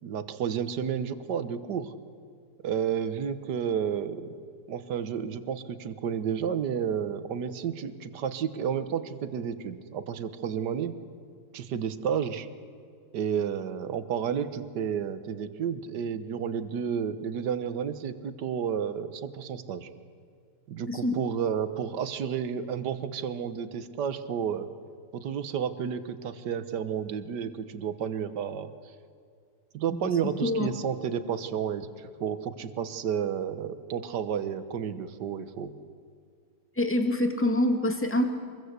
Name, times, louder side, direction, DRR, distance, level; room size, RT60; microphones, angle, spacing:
voice 1, 0.0-1.9 2.6-4.3 4.7-10.9 11.5-12.5 13.1-19.9 20.7-24.7 25.1-28.7 29.7-35.7, right 8 dB, 65° right, 11 dB, 1.7 m, -31 dB
voice 2, 29.9-30.7 36.8-38.3, left 1 dB, 5° left, 4 dB, 1.8 m, -26 dB
26.0 x 21.5 x 8.2 m, 2.3 s
omnidirectional pair, 2.1 m